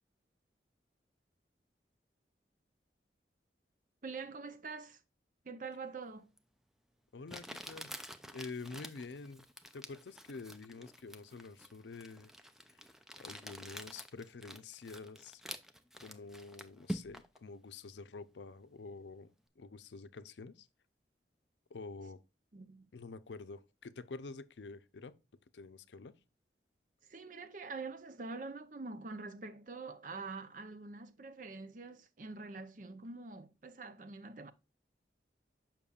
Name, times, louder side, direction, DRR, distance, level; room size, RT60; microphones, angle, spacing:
voice 1, 4.0-5.0 5.4-6.3 22.5-22.9 27.0-34.5, right 4 dB, 45° right, 0.6 m, -45 dB
Crumpling crinkling, 6.4-6.5 7.3-17.4, equal, ahead, 0.4 m, -47 dB
voice 2, 7.1-7.9 8.3-9.5 9.7-12.3 12.7-12.8 13.2-15.4 16.0-20.7 21.7-22.2 22.9-25.1 25.5-26.1, left 4 dB, 85° left, 0.5 m, -48 dB
6.9 x 5.8 x 2.4 m
head